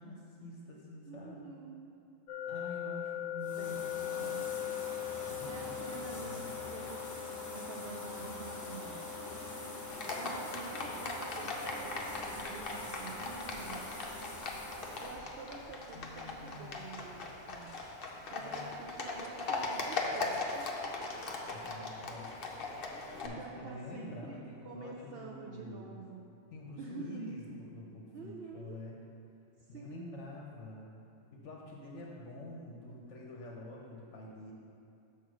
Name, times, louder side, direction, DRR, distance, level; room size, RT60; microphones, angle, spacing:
voice 1, 0.0-1.5 2.5-3.8 4.2-4.4 5.3-6.6 15.9-17.1 18.4-18.7 21.5-22.4 23.2-26.0 26.5-29.0 29.7-30.9 31.3-34.5, left 2 dB, 70° left, -2 dB, 1.1 m, -47 dB
voice 2, 1.1-1.9 3.5-3.8 4.1-4.7 5.0-7.1 7.5-9.1 10.2-13.9 15.0-17.7 18.3-20.7 23.2-26.3 26.8-27.6 28.1-28.8 29.6-30.2, right 4 dB, 60° right, 0 dB, 0.7 m, -48 dB
sound 1, 2.3-15.2, left 12 dB, 90° left, 1.0 m, -43 dB
sound 2, 3.4-15.2, left 1 dB, 20° left, 0.5 m, -45 dB
Livestock farm animals working animals, 9.9-23.3, left 3 dB, 50° left, 0.9 m, -39 dB
7.0 x 4.2 x 6.2 m, 2.6 s
omnidirectional pair, 1.3 m